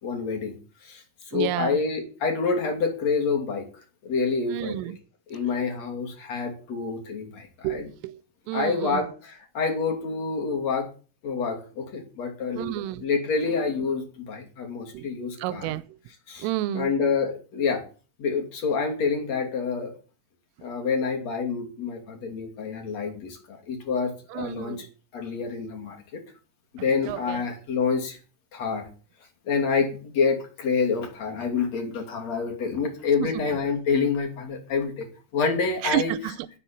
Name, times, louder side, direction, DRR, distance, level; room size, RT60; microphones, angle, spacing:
voice 1, 0.0-0.5 0.8-4.7 5.3-7.8 8.5-10.9 11.2-12.7 13.0-15.7 16.3-16.5 16.7-17.8 18.2-19.9 20.6-24.9 25.1-26.2 26.8-28.2 28.5-28.9 29.4-35.1 35.3-36.1, left 5 dB, 40° left, 3.4 m, -27 dB
voice 2, 1.3-1.8 4.5-5.0 7.6-8.2 8.5-9.1 12.6-13.0 14.9-15.1 15.4-16.0 16.4-16.9 24.3-24.9 27.0-27.4 33.2-33.3 35.8-36.5, right 15 dB, 90° right, 3.4 m, -30 dB
10.0 x 7.7 x 8.4 m
omnidirectional pair, 5.6 m